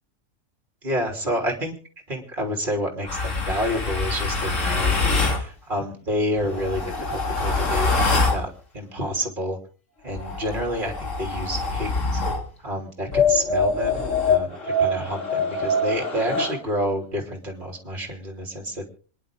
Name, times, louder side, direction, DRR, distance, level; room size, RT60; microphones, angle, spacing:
voice 1, 0.8-1.7 2.1-8.5 8.7-9.6 10.0-12.2 12.6-18.9, equal, 35° right, 3 dB, 3.3 m, -29 dB
sound 1, 3.1-5.4 6.4-8.4 10.1-12.4 13.1-16.6, left 3 dB, 65° left, 2.8 m, -24 dB
26.5 x 10.5 x 3.6 m, 0.39 s
omnidirectional pair, 1.4 m